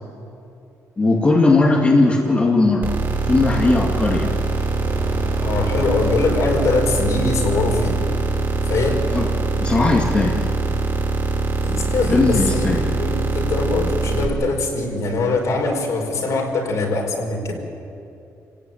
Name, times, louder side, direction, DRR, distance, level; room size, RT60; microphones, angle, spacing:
voice 1, 1.0-2.9 3.3-4.3 9.1-9.3 9.6-10.4 12.1-12.8, left 2 dB, 20° left, -1 dB, 2.2 m, -17 dB
sound 1, 2.8-14.2, right 3 dB, 30° right, 4.3 m, -23 dB
sound 2, 2.8-7.2, right 2 dB, 80° right, 3.3 m, -36 dB
voice 2, 5.4-8.0 8.6-9.0 11.6-17.5, left 3 dB, 60° left, 2 dB, 4.9 m, -22 dB
30.0 x 17.0 x 9.3 m, 2.7 s
cardioid pair, 170°, 6 cm